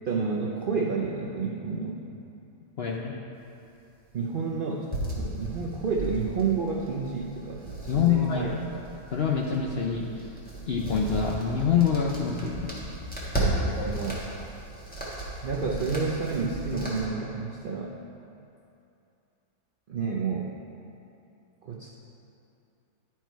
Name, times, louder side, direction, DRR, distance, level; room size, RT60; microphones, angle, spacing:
voice 1, 0.1-2.0 4.1-8.5 13.4-14.3 15.4-18.0 19.9-20.5 21.6-21.9, right 5 dB, 70° right, -2 dB, 0.5 m, -30 dB
voice 2, 2.8-3.2 7.9-8.8 9.1-10.3 10.7-12.7, left 7 dB, 65° left, -1 dB, 0.6 m, -26 dB
sound 1, 4.9-17.0, right 1 dB, 5° left, 1.3 m, -35 dB
11.5 x 4.6 x 4.5 m, 2.7 s
omnidirectional pair, 1.7 m